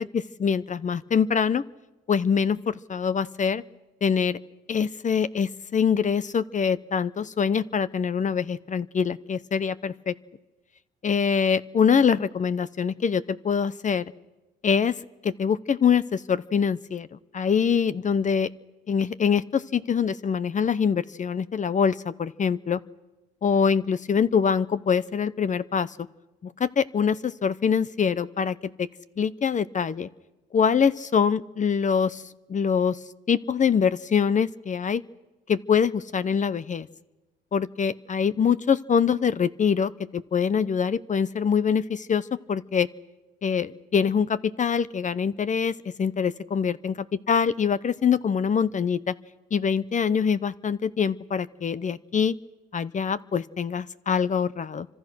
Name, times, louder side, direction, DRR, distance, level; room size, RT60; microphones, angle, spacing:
voice 1, 0.0-1.6 2.1-3.6 4.0-4.4 4.7-10.1 11.0-14.0 14.6-15.0 15.2-18.5 18.9-22.8 23.4-26.1 26.4-28.9 29.2-30.1 30.5-32.2 32.5-33.0 33.3-35.0 35.5-36.9 37.5-42.9 43.4-46.9 47.3-49.1 49.5-52.3 52.7-54.9, left 6 dB, 40° left, 17 dB, 0.8 m, -24 dB
28.5 x 25.5 x 6.2 m, 1.1 s
cardioid pair, 90°, 20 cm